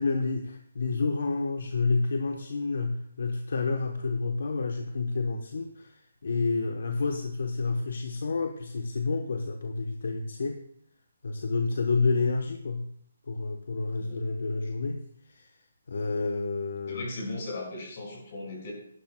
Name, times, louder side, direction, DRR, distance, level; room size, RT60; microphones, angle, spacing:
voice 1, 0.0-10.6 11.2-12.9 13.3-15.5 15.9-17.0, left 4 dB, 70° left, 5 dB, 0.9 m, -29 dB
voice 2, 16.9-18.7, left 2 dB, 40° left, -1 dB, 5.1 m, -37 dB
15.0 x 11.5 x 2.2 m, 0.69 s
hypercardioid pair, 165°, 0 cm